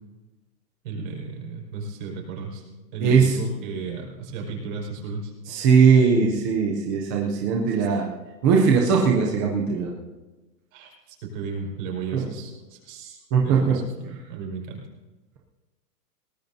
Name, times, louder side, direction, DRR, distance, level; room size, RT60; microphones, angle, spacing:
voice 1, 0.8-2.7 2.9-5.3 10.7-14.8, right 4 dB, 50° right, -1 dB, 5.4 m, -34 dB
voice 2, 3.0-3.4 5.5-8.1 8.4-9.9 12.1-12.3 13.3-13.8, right 6 dB, 10° right, -1 dB, 0.4 m, -19 dB
20.5 x 19.0 x 2.7 m, 1.2 s
hypercardioid pair, 150°, 49 cm